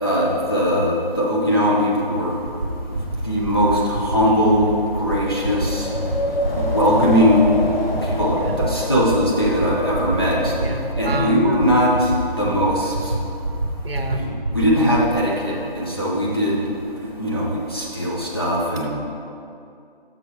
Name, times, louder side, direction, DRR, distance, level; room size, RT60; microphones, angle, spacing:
voice 1, 0.0-2.4 2.9-5.9 6.5-7.5 8.0-10.5 11.0-13.1 14.1-16.7 17.0-18.9, equal, 25° left, -6 dB, 0.8 m, -20 dB
Wind, 1.9-12.0, left 1 dB, 75° left, 1.1 m, -29 dB
sound 1, 2.5-2.7 2.9-3.2 3.4-3.7 3.9-4.2 4.4-4.7 4.9-5.2 5.4-5.7 5.9-6.2 6.4-6.7 6.9-7.2 7.4-7.7 7.9-8.2 8.4-8.7 8.9-9.2 9.4-9.7 9.9-10.2 10.4-10.7 10.9-11.2 11.4-11.7 11.9-12.2 12.4-12.7 12.9-13.2 13.4-13.7 13.9-14.2 14.4-14.7 14.9-15.1, right 2 dB, 45° right, 0.8 m, -25 dB
voice 2, 10.6-11.4 13.8-14.2, right 2 dB, 80° right, 3 dB, 1.0 m, -29 dB
7.0 x 6.0 x 4.7 m, 2.5 s
figure-of-eight pair, 180°, 29 cm